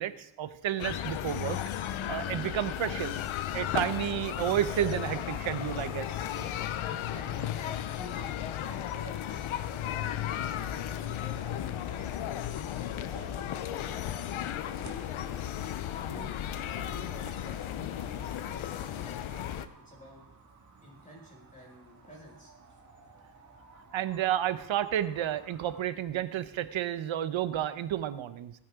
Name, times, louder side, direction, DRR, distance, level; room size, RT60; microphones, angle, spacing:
voice 1, 0.0-1.6 2.1-3.2 3.5-6.1 6.4-6.5 23.9-28.5, right 11 dB, 75° right, 12 dB, 1.0 m, -31 dB
sound 1, 0.8-19.7, left 11 dB, 85° left, 0.8 m, -35 dB
voice 2, 6.9-12.2 12.9-14.1 14.6-15.4 15.9-20.2 20.8-22.5, left 1 dB, 15° left, -3 dB, 5.6 m, -50 dB
sound 2, 9.6-25.8, right 4 dB, 35° right, 2.3 m, -54 dB
17.0 x 9.7 x 3.8 m, 0.80 s
cardioid pair, 75°, 47 cm